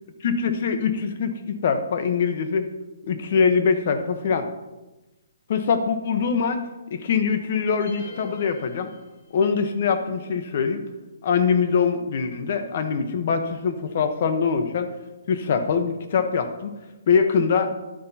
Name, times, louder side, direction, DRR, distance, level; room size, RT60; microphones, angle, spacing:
voice 1, 0.2-2.7 3.1-4.5 5.5-8.9 9.3-10.8 11.2-14.9 15.3-16.7 17.1-17.7, left 6 dB, 45° left, 8 dB, 1.0 m, -23 dB
sound 1, 7.8-9.6, left 2 dB, 65° left, 2.8 m, -47 dB
11.0 x 9.8 x 2.9 m, 1.1 s
hypercardioid pair, 165°, 0 cm